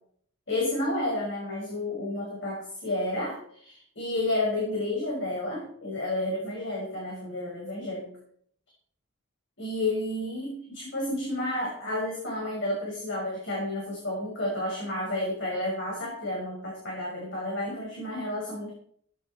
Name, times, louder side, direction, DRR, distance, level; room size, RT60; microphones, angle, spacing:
voice 1, 0.5-8.1 9.6-18.7, left 1 dB, 65° left, -3 dB, 5.7 m, -31 dB
18.0 x 10.5 x 4.5 m, 0.64 s
head